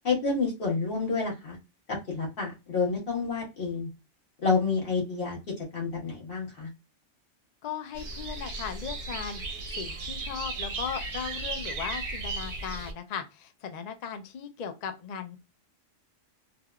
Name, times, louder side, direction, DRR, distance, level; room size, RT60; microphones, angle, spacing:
voice 1, 0.0-1.6 2.1-3.9 4.4-5.4 5.7-6.7, left 4 dB, 50° left, 1.5 m, -29 dB
voice 2, 7.6-9.4 9.8-15.4, left 7 dB, 70° left, 0.4 m, -37 dB
sound 1, 7.9-12.9, right 3 dB, 55° right, 0.7 m, -35 dB
3.4 x 2.4 x 2.2 m
omnidirectional pair, 1.3 m